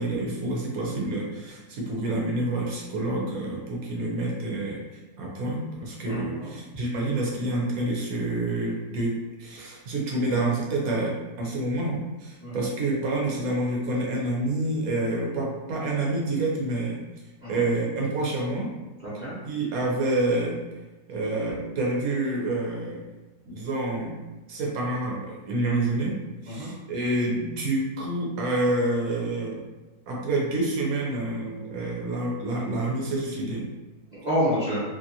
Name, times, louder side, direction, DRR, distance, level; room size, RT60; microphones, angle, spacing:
voice 1, 0.0-17.0 17.5-18.7 19.4-20.6 21.1-23.0 23.5-24.2 24.5-29.7 30.1-33.7, right 2 dB, 60° right, -3 dB, 1.1 m, -28 dB
voice 2, 6.0-6.5 12.4-12.5 17.4-17.6 19.0-19.4 26.5-26.7 34.1-34.8, equal, 35° right, -11 dB, 0.8 m, -28 dB
2.9 x 2.4 x 2.7 m, 1.1 s
omnidirectional pair, 1.8 m